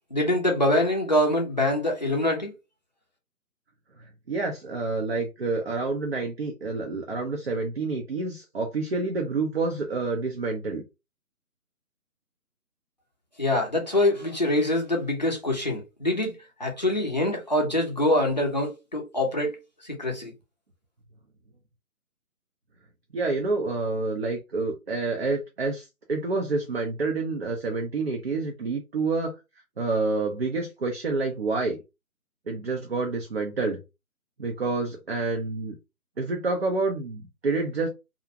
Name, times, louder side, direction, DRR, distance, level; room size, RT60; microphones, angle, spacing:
voice 1, 0.1-2.5 13.4-19.6 19.8-20.3, left 1 dB, 30° left, 0.4 m, -24 dB
voice 2, 4.3-10.8 23.1-29.3 29.8-31.8 32.5-33.8 34.4-35.8 36.2-37.9, right 3 dB, 45° right, 0.4 m, -28 dB
2.4 x 2.0 x 2.6 m
figure-of-eight pair, 155°, 45 cm